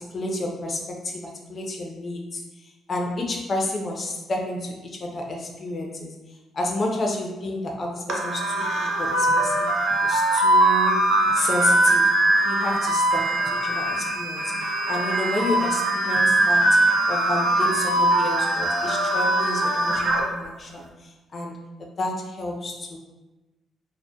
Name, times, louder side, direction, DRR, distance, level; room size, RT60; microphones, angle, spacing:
voice 1, 0.0-6.1 6.5-9.7 10.0-11.0 11.3-12.1 12.5-16.8 17.1-23.0, left 2 dB, 40° left, 0 dB, 0.5 m, -30 dB
sound 1, 8.1-20.2, right 1 dB, 70° right, 0.4 m, -21 dB
2.2 x 2.1 x 2.7 m, 1.1 s
cardioid pair, 90°, 0 cm